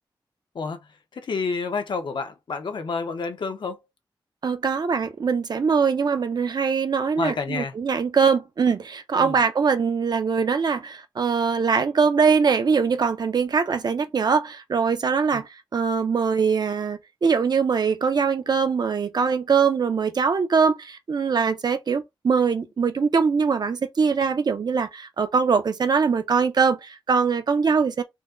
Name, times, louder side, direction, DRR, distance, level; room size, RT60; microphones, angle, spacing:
voice 1, 1.1-3.8 7.2-7.7 9.1-9.4 15.3-15.4, left 4 dB, 65° left, 0.9 m, -29 dB
voice 2, 4.4-28.0, right 5 dB, 55° right, 0.7 m, -22 dB
4.2 x 2.3 x 3.8 m
wide cardioid pair, 150°, 9 cm